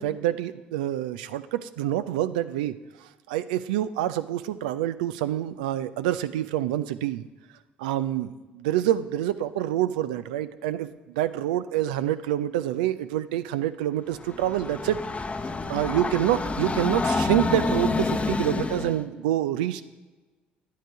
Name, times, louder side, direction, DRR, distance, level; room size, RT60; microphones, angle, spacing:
voice 1, 0.0-2.8 3.3-7.3 7.8-15.0 15.7-19.8, right 12 dB, 80° right, 13 dB, 0.4 m, -27 dB
Train, 14.1-19.0, left 3 dB, 30° left, 0.8 m, -28 dB
10.0 x 9.2 x 4.6 m, 1.2 s
hypercardioid pair, 50°, 5 cm